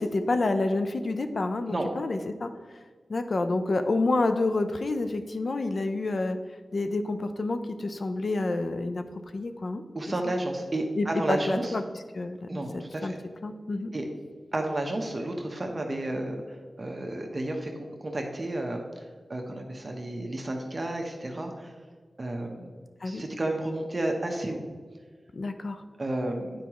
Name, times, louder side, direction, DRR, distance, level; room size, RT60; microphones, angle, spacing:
voice 1, 0.0-2.5 3.1-6.4 6.7-9.0 9.3-9.8 10.2-10.3 11.0-11.8 12.1-12.5 12.7-13.1 13.4-13.9 23.0-23.2 25.3-25.8, left 2 dB, 60° left, 8 dB, 0.5 m, -28 dB
voice 2, 9.9-11.7 12.5-13.2 13.9-14.1 14.5-19.0 19.3-21.7 22.2-22.7 23.0-24.6 26.0-26.5, right 1 dB, 40° right, 2 dB, 0.9 m, -32 dB
9.3 x 4.7 x 3.0 m, 1.5 s
wide cardioid pair, 75°, 0 cm